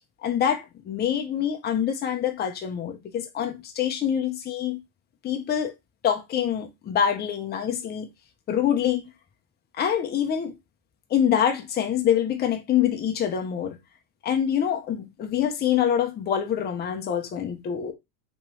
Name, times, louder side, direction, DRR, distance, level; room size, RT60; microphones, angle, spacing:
voice 1, 0.2-4.8 5.2-5.7 6.0-8.1 8.5-9.1 9.8-10.5 11.1-13.8 14.2-17.9, left 9 dB, 20° left, 0.6 m, -25 dB
3.4 x 3.1 x 2.9 m
supercardioid pair, 135°, 49 cm